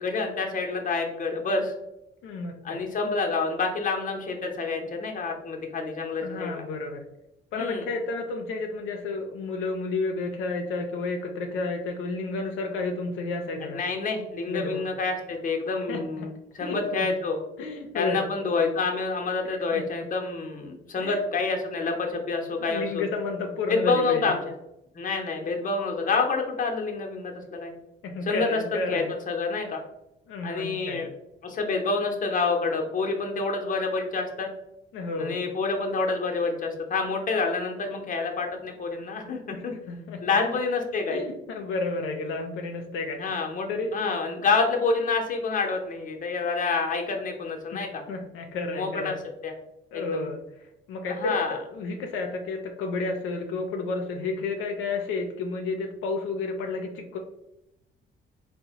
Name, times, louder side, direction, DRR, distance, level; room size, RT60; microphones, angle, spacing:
voice 1, 0.0-1.7 2.6-6.6 7.5-7.8 13.6-17.4 17.9-23.0 23.7-24.4 24.9-27.7 28.2-29.8 30.4-31.1 31.4-34.5 35.2-39.7 40.2-41.2 43.2-48.0 48.7-49.1 49.4-49.5 49.9-50.2 51.1-51.6, left 4 dB, 40° left, 2 dB, 0.7 m, -28 dB
voice 2, 2.2-2.8 6.2-7.0 7.5-13.8 14.5-14.8 15.9-16.3 16.6-17.1 17.6-18.2 19.7-19.8 21.0-21.2 22.6-24.4 28.0-29.1 30.3-31.0 34.9-35.4 39.5-40.2 41.1-43.2 43.7-43.9 47.7-47.8 48.1-49.2 49.9-57.2, left 3 dB, 90° left, 3 dB, 0.5 m, -31 dB
3.7 x 2.1 x 2.8 m, 0.86 s
cardioid pair, 90°, 20 cm